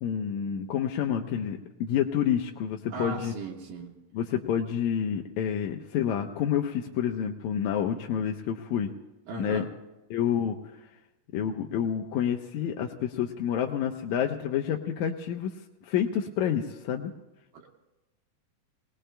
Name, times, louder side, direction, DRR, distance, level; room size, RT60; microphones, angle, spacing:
voice 1, 0.0-3.3 4.1-8.9 9.4-9.7 10.1-10.6 11.3-15.5 15.9-17.1, left 9 dB, 75° left, 2 dB, 1.9 m, -28 dB
voice 2, 2.9-3.9 9.3-9.7 17.5-17.7, right 3 dB, 80° right, -2 dB, 3.1 m, -37 dB
29.0 x 19.5 x 2.2 m, 1.0 s
omnidirectional pair, 3.8 m